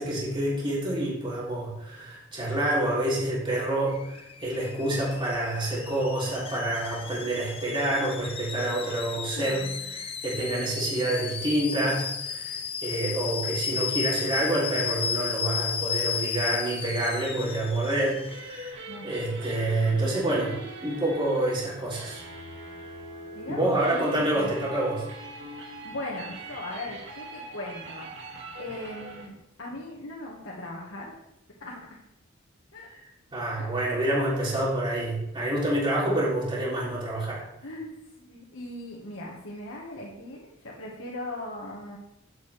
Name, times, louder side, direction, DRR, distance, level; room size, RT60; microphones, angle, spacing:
voice 1, 0.0-20.6 20.8-22.2 23.5-25.0 33.3-37.4, right 1 dB, 25° right, -6 dB, 3.3 m, -28 dB
Alarm / Boiling, 3.9-18.7, left 6 dB, 30° left, 0.8 m, -34 dB
voice 2, 9.0-10.0 18.9-19.2 23.3-24.5 25.8-28.1 28.6-31.1 31.6-31.8 32.7-32.9 33.6-34.0 37.6-42.0, left 1 dB, 70° left, -3 dB, 1.7 m, -39 dB
sound 1, 18.1-29.3, right 1 dB, 60° right, 2.2 m, -42 dB
11.0 x 8.1 x 3.4 m, 0.84 s
head